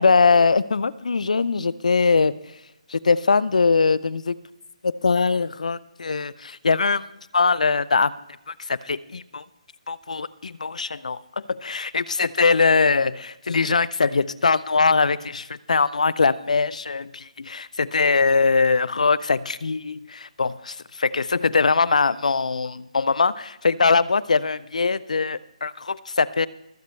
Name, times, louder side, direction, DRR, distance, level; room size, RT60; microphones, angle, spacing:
voice 1, 0.0-2.3 2.9-4.4 4.8-7.0 7.3-8.1 8.5-9.4 9.9-11.2 11.5-26.5, left 4 dB, 80° left, 19 dB, 0.5 m, -21 dB
23.5 x 8.0 x 3.2 m, 0.88 s
hypercardioid pair, 155°, 4 cm